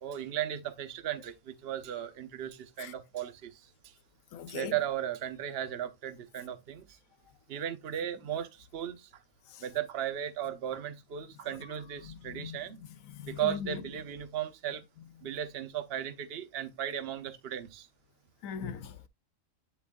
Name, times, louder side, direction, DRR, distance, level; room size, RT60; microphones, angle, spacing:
voice 1, 0.0-3.6 4.5-6.9 7.5-9.1 9.6-12.8 13.3-14.8 15.2-17.9, right 10 dB, 50° right, 1.0 m, -36 dB
voice 2, 4.3-4.7 9.5-9.6 11.5-11.6 12.0-13.8 18.4-19.1, left 7 dB, 80° left, 1.1 m, -41 dB
9.6 x 4.6 x 2.5 m
omnidirectional pair, 1.4 m